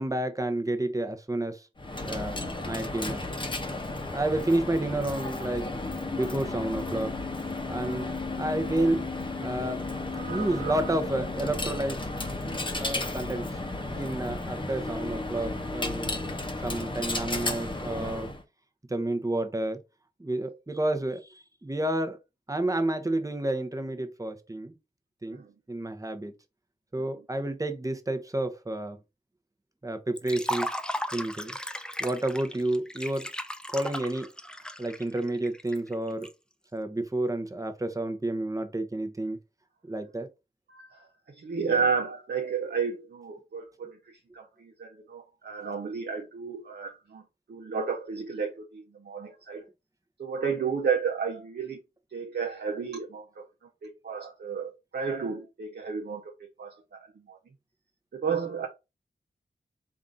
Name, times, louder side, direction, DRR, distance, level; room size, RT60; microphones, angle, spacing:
voice 1, 0.0-1.6 2.0-2.4 2.6-3.2 4.1-5.7 6.2-7.1 7.7-8.1 8.4-9.0 9.4-9.8 10.3-12.0 12.8-13.5 13.9-16.1 16.6-18.3 18.9-19.8 20.2-22.2 22.5-24.7 25.2-25.4 25.7-26.3 26.9-29.0 29.8-30.7 31.1-31.5 32.0-33.3 33.7-34.3 34.8-36.3 36.7-39.4 39.8-40.3, right 1 dB, 20° right, 0.8 m, -30 dB
Coin (dropping), 1.8-18.4, left 2 dB, 25° left, 0.8 m, -33 dB
voice 2, 10.1-10.9 25.3-25.5 27.0-27.1 40.7-41.1 41.3-47.2 47.5-49.6 50.2-51.8 52.1-53.4 53.8-56.3 56.6-57.4 58.1-58.7, right 5 dB, 60° right, 0.8 m, -32 dB
Liquid, 30.2-36.3, equal, 5° left, 0.5 m, -35 dB
3.6 x 2.6 x 3.7 m
cardioid pair, 45°, 18 cm